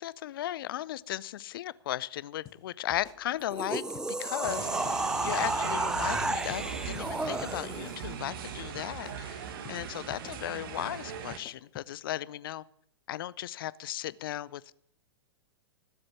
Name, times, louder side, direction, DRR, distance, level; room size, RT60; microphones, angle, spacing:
voice 1, 0.0-3.8 4.2-12.6 13.1-14.7, left 13 dB, 55° left, 20 dB, 0.5 m, -36 dB
sound 1, 2.5-2.6 2.9-3.7 4.0-4.4 4.9-5.0 5.3-5.6 6.5-7.4 7.7-8.4 8.8-9.2 9.7-9.8 10.1-10.4 11.3-11.9, left 11 dB, 25° left, 1.0 m, -50 dB
sound 2, 3.4-8.0, right 2 dB, 5° right, 0.5 m, -32 dB
sound 3, 4.4-11.4, right 7 dB, 55° right, 1.6 m, -39 dB
16.0 x 7.8 x 6.0 m, 0.73 s
figure-of-eight pair, 105°, 14 cm